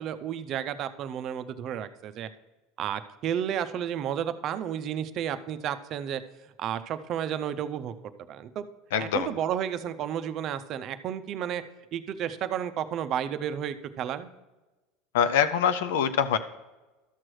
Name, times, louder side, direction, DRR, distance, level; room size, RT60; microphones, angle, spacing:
voice 1, 0.0-2.3 2.8-6.2 6.6-7.9 8.3-8.7 9.0-11.6 11.9-14.3, right 9 dB, 45° right, 10 dB, 0.5 m, -32 dB
voice 2, 8.9-9.3 15.1-16.4, left 8 dB, 85° left, 11 dB, 0.4 m, -24 dB
13.0 x 6.1 x 3.2 m, 1.1 s
supercardioid pair, 120°, 0 cm